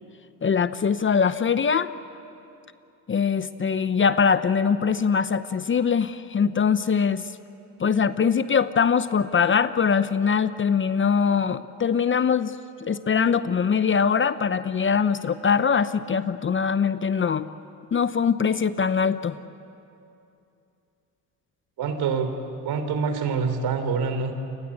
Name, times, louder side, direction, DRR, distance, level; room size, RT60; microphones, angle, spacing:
voice 1, 0.4-1.9 3.1-7.3 7.8-12.5 12.8-17.5 17.9-19.4, left 6 dB, 30° left, 13 dB, 0.8 m, -22 dB
voice 2, 21.8-22.3 22.6-24.3, right 5 dB, 60° right, 8 dB, 3.4 m, -26 dB
29.0 x 22.0 x 8.6 m, 2.7 s
supercardioid pair, 85°, 41 cm